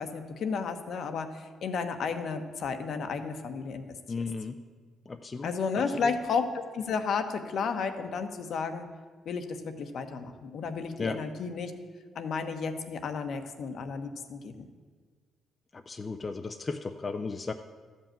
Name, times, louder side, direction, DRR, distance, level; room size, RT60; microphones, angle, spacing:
voice 1, 0.0-4.0 5.4-8.9 9.2-11.7 12.1-14.7, left 5 dB, 65° left, 7 dB, 1.1 m, -33 dB
voice 2, 4.1-4.6 5.1-5.5 5.8-6.0 11.0-11.2 15.7-17.5, left 4 dB, 30° left, 6 dB, 0.6 m, -35 dB
13.0 x 5.5 x 8.9 m, 1.5 s
cardioid pair, 90°, 0 cm